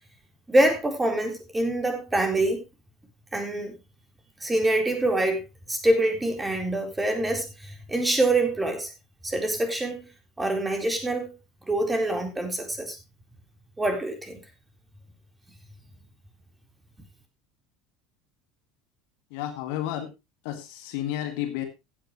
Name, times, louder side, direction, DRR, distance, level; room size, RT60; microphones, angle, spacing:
voice 1, 0.5-2.6 3.3-3.7 4.4-5.4 5.7-8.9 9.2-10.1 10.4-11.3 11.7-13.0 13.8-14.4, right 1 dB, 15° right, 4 dB, 4.0 m, -25 dB
voice 2, 19.3-20.1 20.4-21.6, left 12 dB, 60° left, 6 dB, 2.1 m, -31 dB
15.5 x 9.5 x 3.1 m, 0.24 s
figure-of-eight pair, 70°, 0 cm